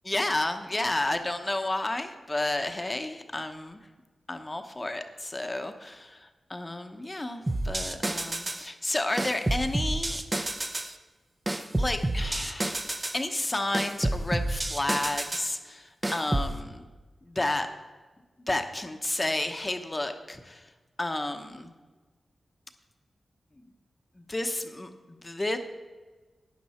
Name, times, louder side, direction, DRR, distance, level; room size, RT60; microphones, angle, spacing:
voice 1, 0.0-3.9 4.3-10.2 11.8-16.9 17.2-17.7 18.5-20.7 21.0-21.7 24.1-25.6, left 2 dB, 25° left, 7 dB, 0.9 m, -31 dB
sound 1, 7.5-8.7 9.2-10.9 11.5-13.2 13.7-15.5 16.0-16.5, right 1 dB, 25° right, 0.8 m, -29 dB
12.0 x 9.7 x 4.3 m, 1.3 s
wide cardioid pair, 85°, 0 cm